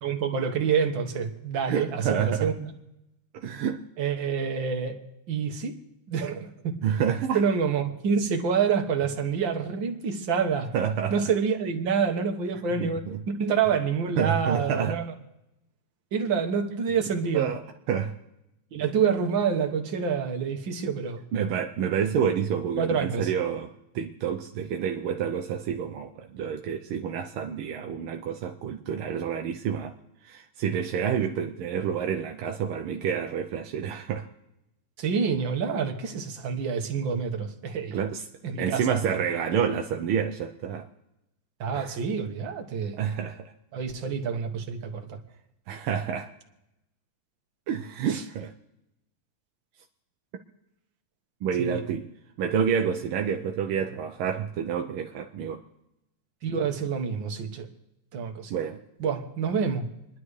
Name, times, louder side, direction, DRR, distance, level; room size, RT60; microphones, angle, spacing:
voice 1, 0.0-2.7 4.0-5.0 5.3-5.8 6.1-6.8 7.3-10.7 11.1-15.1 16.1-17.5 18.7-21.2 22.8-23.3 35.0-38.0 38.4-38.9 41.6-43.0 43.7-45.2 48.1-48.2 51.6-51.8 56.4-57.7 58.1-58.6 59.0-59.8, right 6 dB, 65° right, 4 dB, 2.1 m, -27 dB
voice 2, 1.6-2.5 3.3-3.8 6.8-7.4 10.7-11.1 12.8-13.2 14.2-15.0 17.3-17.6 17.9-18.1 21.3-29.9 30.2-34.3 37.9-38.2 38.6-40.9 41.7-41.9 42.9-43.4 45.7-46.3 47.7-48.5 51.4-52.0 52.4-55.6 58.5-58.8, right 8 dB, 85° right, 4 dB, 1.7 m, -28 dB
28.5 x 11.0 x 3.3 m, 0.90 s
omnidirectional pair, 2.3 m